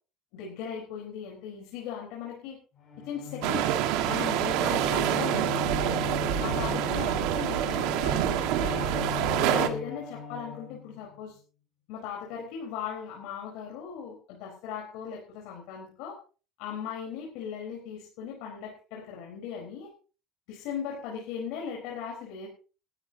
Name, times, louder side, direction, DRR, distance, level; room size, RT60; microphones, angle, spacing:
voice 1, 0.3-2.6 3.0-5.8 6.4-8.9 9.4-11.4 11.9-16.2 16.6-19.9 20.5-22.5, left 7 dB, 80° left, -1 dB, 4.4 m, -38 dB
Bowed string instrument, 2.8-11.2, left 8 dB, 35° left, 6.0 m, -39 dB
sound 1, 3.4-9.7, right 12 dB, 90° right, 1.7 m, -27 dB
19.5 x 12.5 x 2.9 m, 0.35 s
cardioid pair, 170°, 0 cm